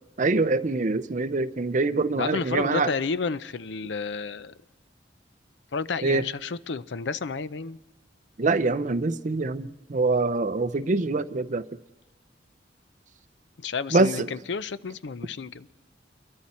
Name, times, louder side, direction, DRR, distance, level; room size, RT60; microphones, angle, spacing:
voice 1, 0.2-2.9 6.0-6.2 8.4-11.6 13.9-14.3, right 3 dB, 45° right, 13 dB, 0.6 m, -24 dB
voice 2, 2.1-4.5 5.7-7.8 13.6-15.7, left 5 dB, 70° left, 15 dB, 0.6 m, -31 dB
28.0 x 22.5 x 4.3 m, 1.1 s
head